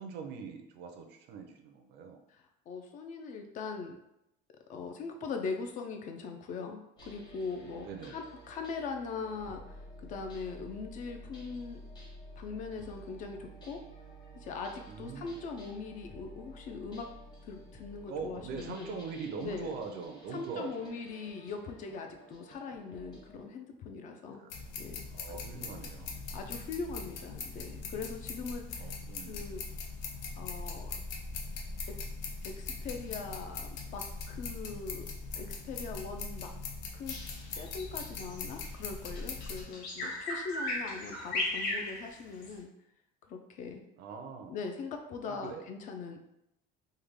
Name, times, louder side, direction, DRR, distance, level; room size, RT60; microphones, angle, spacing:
voice 1, 0.0-2.2 7.7-8.2 14.9-15.4 18.1-20.9 24.4-24.5 25.1-26.2 28.8-29.4 44.0-44.6 45.3-45.6, right 5 dB, 60° right, 5 dB, 0.5 m, -42 dB
voice 2, 2.3-4.0 4.7-9.6 10.0-11.8 12.4-13.8 14.3-17.1 17.4-18.9 19.4-19.7 20.3-24.5 24.8-25.0 25.3-25.7 26.3-28.9 29.3-29.6 30.4-30.9 31.9-32.0 32.4-35.1 35.3-36.5 36.9-42.7 43.3-43.8 44.5-46.2, left 4 dB, 40° left, 4 dB, 0.4 m, -41 dB
sound 1, 7.0-23.5, equal, 20° left, 0.8 m, -51 dB
sound 2, 24.5-39.7, left 4 dB, 85° left, 0.6 m, -41 dB
Bird vocalization bird call bird song, 37.1-42.6, left 1 dB, 70° left, 1.0 m, -37 dB
3.2 x 2.1 x 3.4 m, 0.81 s
cardioid pair, 165°, 19 cm